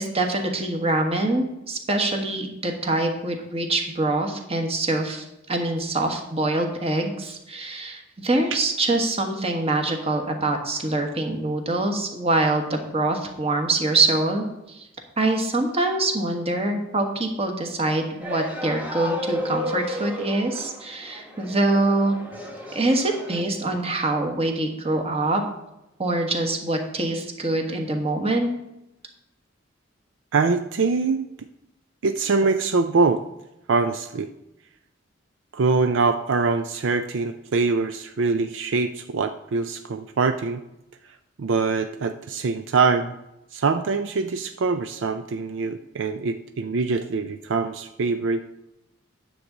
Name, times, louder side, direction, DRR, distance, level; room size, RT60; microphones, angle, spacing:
voice 1, 0.0-14.9 15.2-22.1 22.7-25.4 26.0-28.5, right 2 dB, 30° right, 3 dB, 1.3 m, -24 dB
sound 1, 18.2-23.4, equal, 10° right, 1.2 m, -33 dB
voice 2, 30.3-31.3 32.0-33.2 33.7-34.3 35.5-40.6 41.4-43.2 43.5-48.4, right 4 dB, 70° right, 9 dB, 0.4 m, -23 dB
9.8 x 3.9 x 7.2 m, 0.89 s
head